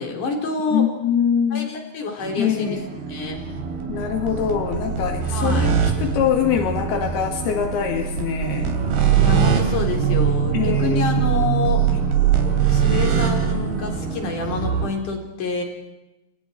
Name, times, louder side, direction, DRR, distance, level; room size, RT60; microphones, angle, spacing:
voice 1, 0.0-0.9 1.5-2.8 3.1-3.4 5.3-5.7 9.2-11.9 12.7-15.6, left 4 dB, 55° left, 3 dB, 5.5 m, -27 dB
voice 2, 0.7-1.7 2.4-2.8 3.9-8.7 10.5-11.0, left 8 dB, 85° left, 4 dB, 4.0 m, -23 dB
sound 1, 2.2-14.9, right 7 dB, 80° right, 4.9 m, -22 dB
29.5 x 29.0 x 4.7 m, 0.97 s
omnidirectional pair, 4.5 m